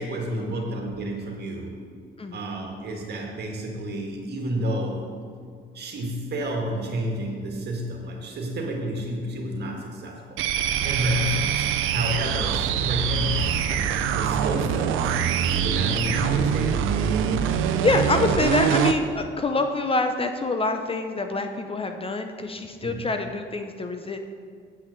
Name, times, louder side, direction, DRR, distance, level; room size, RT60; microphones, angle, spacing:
voice 1, 0.0-1.8 2.3-5.1 5.7-10.4 10.8-13.7 14.1-15.1 15.5-17.0 17.5-17.7 22.8-23.0, equal, 55° right, 0 dB, 2.0 m, -30 dB
sound 1, 10.4-19.0, right 8 dB, 90° right, 0.6 m, -24 dB
voice 2, 17.8-24.2, left 3 dB, 30° left, 6 dB, 0.7 m, -26 dB
8.0 x 6.1 x 6.5 m, 2.1 s
cardioid pair, 90°, 20 cm